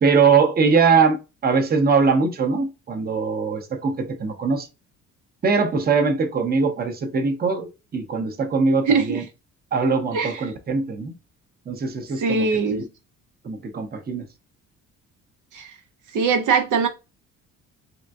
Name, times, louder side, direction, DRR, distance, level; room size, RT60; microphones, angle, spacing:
voice 1, 0.0-4.7 5.4-9.2 9.7-11.1 11.7-12.8 13.4-14.2, right 5 dB, 30° right, 0.7 m, -21 dB
voice 2, 8.9-9.2 10.1-10.4 12.2-12.9 15.5-15.8 16.1-16.9, right 5 dB, 65° right, 0.6 m, -21 dB
3.6 x 2.5 x 2.3 m
cardioid pair, 90°, 33 cm